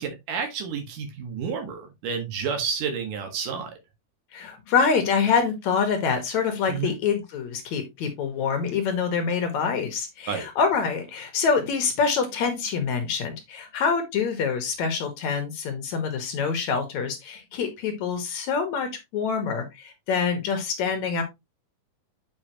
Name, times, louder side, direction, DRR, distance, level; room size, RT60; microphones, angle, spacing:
voice 1, 0.0-3.7 6.7-7.0 10.3-10.5, right 6 dB, 75° right, 3.2 m, -30 dB
voice 2, 4.3-21.2, left 5 dB, 65° left, 2.5 m, -26 dB
8.0 x 5.4 x 2.9 m
omnidirectional pair, 3.8 m